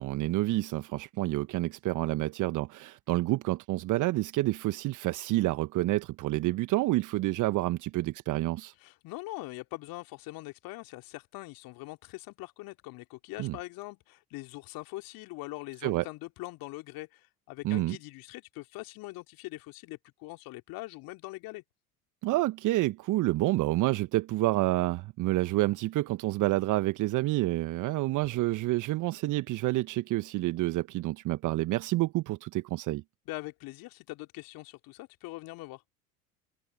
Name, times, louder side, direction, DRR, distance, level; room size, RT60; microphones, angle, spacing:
voice 1, 0.0-8.7 13.4-13.6 15.8-16.0 17.6-18.0 22.2-33.0, right 18 dB, 45° right, 1.4 m, -28 dB
voice 2, 8.8-21.6 33.3-35.8, left 21 dB, 50° left, 2.9 m, -42 dB
figure-of-eight pair, 75°, 45 cm